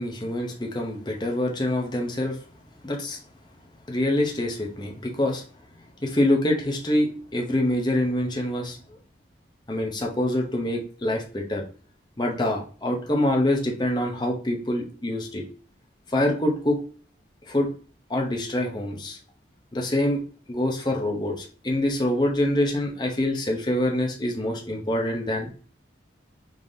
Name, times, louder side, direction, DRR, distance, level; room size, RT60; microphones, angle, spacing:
voice 1, 0.0-2.4 2.8-3.2 3.9-5.4 6.0-8.8 9.7-11.6 12.2-15.4 16.1-16.8 17.5-17.7 18.1-19.2 19.7-20.2 20.5-25.5, left 1 dB, 25° left, 1 dB, 0.7 m, -25 dB
3.8 x 3.3 x 2.6 m, 0.42 s
head